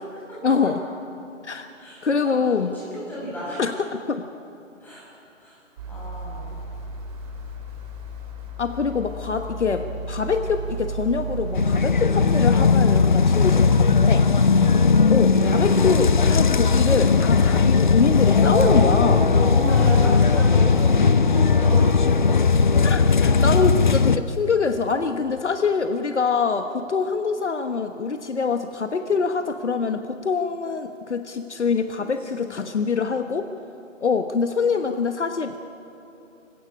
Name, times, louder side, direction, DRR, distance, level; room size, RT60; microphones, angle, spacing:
voice 1, 0.4-0.8 1.4-1.7 2.0-2.7 3.6-4.3 8.6-14.3 15.1-19.2 22.8-33.5 34.0-35.6, left 5 dB, 60° left, 7 dB, 1.3 m, -24 dB
voice 2, 1.8-3.6 4.8-5.0 5.4-5.6 5.9-6.7 14.5-15.0 18.2-21.9 32.3-32.8, equal, 5° left, -8 dB, 7.0 m, -31 dB
sound 1, 5.8-14.0 14.4-14.5, right 2 dB, 30° right, 3.1 m, -34 dB
sound 2, 11.5-24.2, left 5 dB, 40° left, 0.6 m, -18 dB
25.0 x 16.5 x 8.6 m, 2.8 s
figure-of-eight pair, 155°, 39 cm